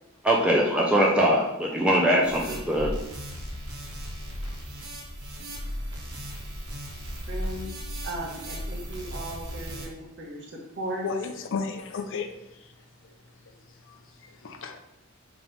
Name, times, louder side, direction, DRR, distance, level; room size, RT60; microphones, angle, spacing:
voice 1, 0.2-2.9, equal, 5° right, -3 dB, 0.4 m, -22 dB
sound 1, 2.2-9.9, equal, 85° right, 1.0 m, -36 dB
voice 2, 7.3-7.7 8.0-11.1, right 1 dB, 55° right, -2 dB, 0.9 m, -37 dB
voice 3, 11.0-12.3 13.9-14.0 14.2-14.8, left 5 dB, 60° left, 5 dB, 0.5 m, -33 dB
3.7 x 2.9 x 3.9 m, 0.90 s
head